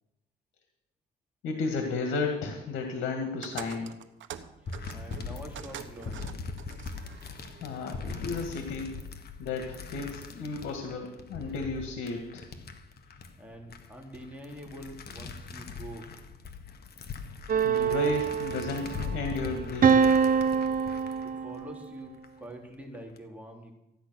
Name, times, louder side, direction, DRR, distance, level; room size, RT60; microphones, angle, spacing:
voice 1, 1.4-3.9 7.6-8.9 9.4-12.4 17.6-20.1, left 4 dB, 85° left, 4 dB, 2.0 m, -33 dB
sound 1, 3.4-8.6, right 9 dB, 70° right, 1.2 m, -45 dB
sound 2, 4.6-22.3 22.7-23.2, left 4 dB, 55° left, 1.6 m, -41 dB
voice 2, 4.6-6.3 13.4-16.1 21.4-23.8, right 1 dB, 5° right, 0 dB, 3.7 m, -45 dB
sound 3, 17.5-19.1 19.8-21.8, right 6 dB, 45° right, 0.8 m, -25 dB
15.0 x 10.0 x 6.4 m, 0.93 s
cardioid pair, 90°, 20 cm